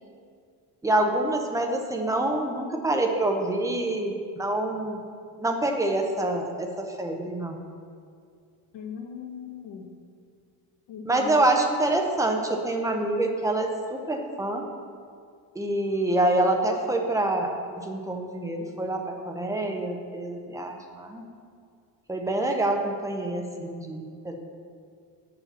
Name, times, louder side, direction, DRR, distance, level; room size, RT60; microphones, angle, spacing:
voice 1, 0.8-5.0 5.4-7.6 11.1-14.7 15.6-21.3 22.1-24.4, right 2 dB, 5° right, 2 dB, 0.6 m, -26 dB
voice 2, 8.7-9.9 10.9-11.4, left 8 dB, 90° left, 2 dB, 1.3 m, -37 dB
8.6 x 4.9 x 6.7 m, 2.2 s
cardioid pair, 160°, 45 cm